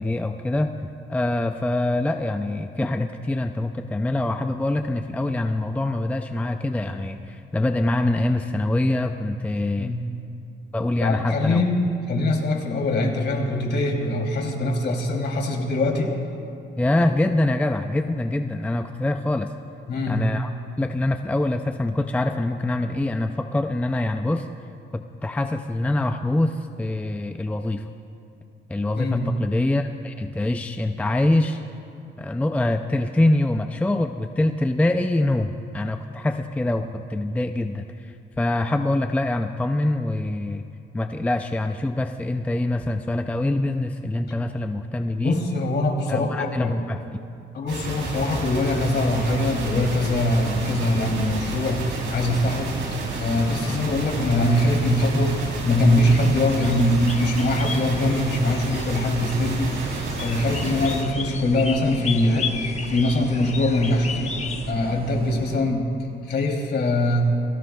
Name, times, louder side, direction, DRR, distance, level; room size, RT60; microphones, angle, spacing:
voice 1, 0.0-9.9 10.7-11.6 16.8-19.5 20.1-20.5 20.8-24.5 24.9-27.8 28.7-31.6 32.2-40.6 40.9-45.4 46.1-47.0, left 1 dB, 5° left, 6 dB, 0.4 m, -24 dB
voice 2, 11.0-16.1 19.9-20.3 29.0-29.3 45.2-46.8 47.5-52.7 53.2-55.3 55.6-59.7 60.2-64.3 64.7-65.9 66.2-67.2, left 1 dB, 60° left, 0 dB, 3.1 m, -22 dB
sound 1, 47.7-61.0, right 2 dB, 75° right, 3.5 m, -31 dB
sound 2, 49.1-65.6, right 7 dB, 45° right, 0.8 m, -38 dB
sound 3, 56.0-64.7, left 5 dB, 35° left, 1.0 m, -35 dB
29.0 x 18.5 x 2.3 m, 2.6 s
cardioid pair, 125°, 20 cm